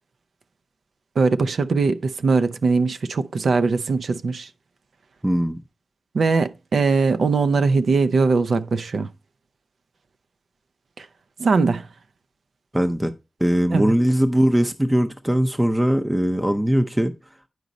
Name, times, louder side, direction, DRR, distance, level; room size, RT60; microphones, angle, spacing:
voice 1, 1.2-4.5 6.1-9.1 11.0-11.1 11.4-11.9 13.7-13.9, right 4 dB, 80° right, 0.5 m, -20 dB
voice 2, 5.2-5.6 12.7-13.1 13.4-17.1, equal, 10° right, 0.5 m, -20 dB
9.3 x 5.0 x 4.0 m
wide cardioid pair, 140°, 0 cm